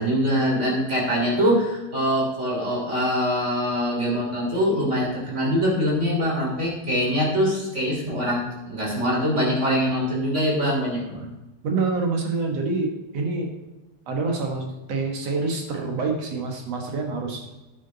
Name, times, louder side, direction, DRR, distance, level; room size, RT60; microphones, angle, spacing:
voice 1, 0.0-11.3, equal, 25° right, -3 dB, 3.3 m, -23 dB
voice 2, 11.6-13.5 14.1-17.5, right 3 dB, 60° right, 2 dB, 2.4 m, -26 dB
9.7 x 9.4 x 3.9 m, 1.1 s
omnidirectional pair, 3.4 m